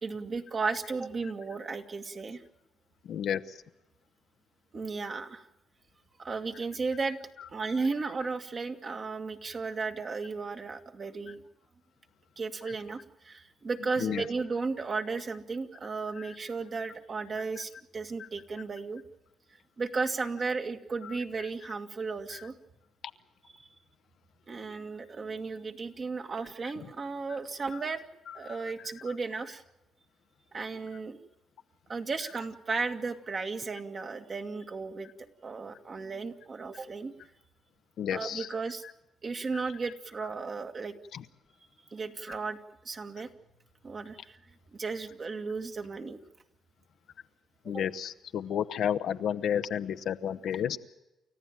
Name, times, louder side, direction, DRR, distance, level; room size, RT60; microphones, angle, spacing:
voice 1, 0.0-2.4 4.7-5.5 6.2-7.2 7.5-11.4 12.4-19.0 19.8-22.5 24.5-28.0 28.3-29.6 30.5-31.2 31.9-35.1 35.4-37.1 38.1-38.8 39.2-40.9 41.6-42.6 42.8-43.3 43.8-44.4 44.7-46.2 47.6-47.8, right 4 dB, 40° right, 6 dB, 2.1 m, -35 dB
voice 2, 3.1-3.4 14.0-14.2 38.0-38.5 47.7-50.8, left 9 dB, 70° left, 10 dB, 1.0 m, -31 dB
29.5 x 14.5 x 9.0 m, 0.98 s
cardioid pair, 90°, 0 cm